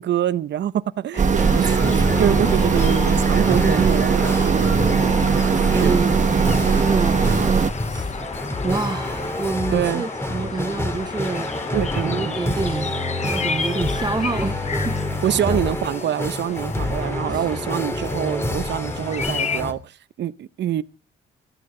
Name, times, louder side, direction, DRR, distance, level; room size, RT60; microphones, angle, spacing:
voice 1, 0.0-5.4 5.7-6.0 9.7-10.1 11.7-12.4 15.2-20.8, right 11 dB, 65° right, 0.9 m, -25 dB
sound 1, 1.1-19.6, left 6 dB, 35° left, 0.9 m, -33 dB
sound 2, 1.2-7.7, right 6 dB, 40° right, 1.2 m, -19 dB
sound 3, 1.4-19.7, left 1 dB, 10° left, 3.0 m, -27 dB
voice 2, 1.4-2.2 3.4-3.9 5.5-8.2 8.6-11.5 12.0-12.9 13.2-15.0 15.3-15.6 17.3-17.5, right 4 dB, 20° right, 0.8 m, -28 dB
20.5 x 14.0 x 3.8 m
cardioid pair, 90°, 20 cm